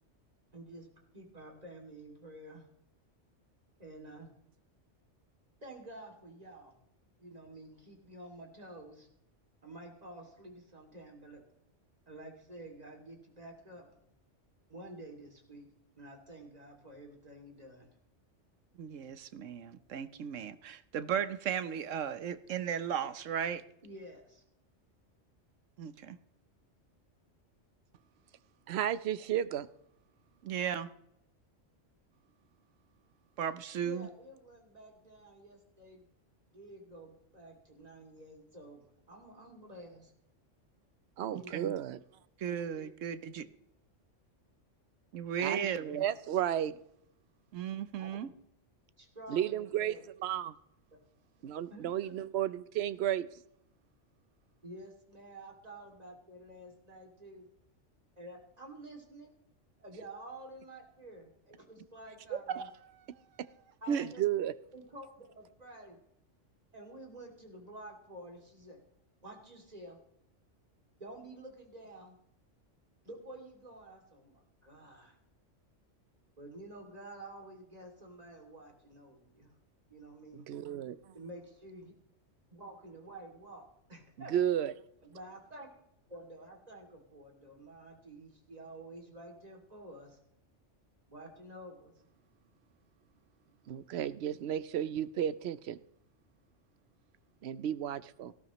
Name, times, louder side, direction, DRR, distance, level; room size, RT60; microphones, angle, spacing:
voice 1, 0.5-0.9 1.1-2.7 3.8-4.3 5.6-6.7 7.2-9.1 9.6-11.4 12.1-14.0 14.7-15.7 16.0-18.0 23.8-24.4 33.8-36.0 36.5-40.1 41.3-41.5 42.5-42.8 43.4-43.5 48.0-48.3 49.0-50.0 51.7-52.1 54.6-57.5 58.2-59.3 59.8-62.7 63.8-64.2 64.7-66.0 66.7-68.8 69.2-70.0 71.0-72.2 73.0-75.2 76.4-79.6 79.9-80.5 81.1-81.9 82.5-84.3 85.0-85.7 86.1-90.2 91.1-91.9, right 1 dB, 30° right, 2 dB, 2.8 m, -50 dB
voice 2, 18.8-23.6 25.8-26.2 30.4-30.9 33.4-34.1 41.3-41.7 42.4-43.4 45.1-46.0 47.5-48.3 62.5-62.7 63.9-64.1, right 8 dB, 85° right, 13 dB, 1.2 m, -35 dB
voice 3, 28.7-29.7 41.2-42.0 45.4-45.7 46.0-46.8 49.3-50.5 51.4-53.3 63.4-63.5 64.2-64.5 80.3-81.0 84.3-84.7 93.7-95.8 97.4-98.3, right 11 dB, 65° right, 15 dB, 0.9 m, -33 dB
18.5 x 14.0 x 3.1 m, 0.78 s
omnidirectional pair, 1.3 m